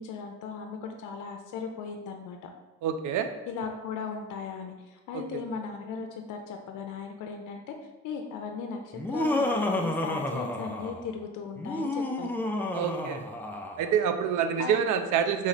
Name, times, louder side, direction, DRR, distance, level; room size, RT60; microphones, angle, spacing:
voice 1, 0.0-2.5 3.5-7.7 8.0-12.3 14.6-14.8, left 5 dB, 80° left, 4 dB, 0.5 m, -37 dB
voice 2, 2.8-3.3 5.1-5.2 12.7-13.2 13.8-15.5, right 8 dB, 80° right, 7 dB, 0.5 m, -27 dB
Laughter, 8.9-11.1 11.6-13.9, left 1 dB, 5° left, 0.5 m, -30 dB
4.2 x 3.0 x 4.0 m, 1.1 s
cardioid pair, 90°, 30 cm